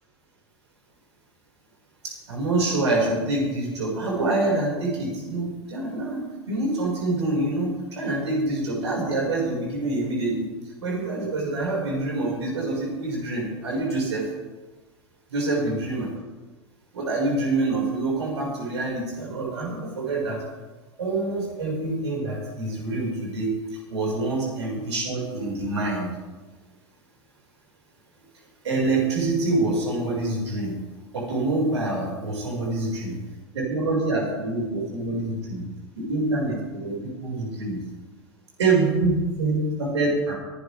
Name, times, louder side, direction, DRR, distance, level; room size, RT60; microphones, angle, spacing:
voice 1, 2.0-10.5 10.8-14.3 15.3-16.1 16.9-20.4 21.0-23.5 23.9-26.1 28.6-30.8 31.1-33.2 33.5-35.6 36.0-37.8 38.6-40.3, right 2 dB, 75° right, -2 dB, 6.1 m, -26 dB
24.5 x 11.5 x 3.7 m, 1.2 s
figure-of-eight pair, 85°, 15 cm